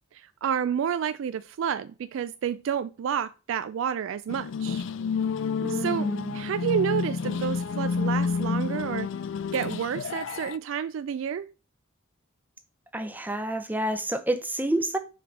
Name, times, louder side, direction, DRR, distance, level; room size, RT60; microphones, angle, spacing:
voice 1, 0.1-4.8 5.7-9.1 9.5-11.5, right 8 dB, 65° right, 0.3 m, -30 dB
sound 1, 4.3-10.6, left 5 dB, 60° left, 0.3 m, -29 dB
voice 2, 5.6-6.3 12.9-15.0, right 1 dB, 10° right, 0.5 m, -29 dB
5.8 x 3.3 x 5.3 m
head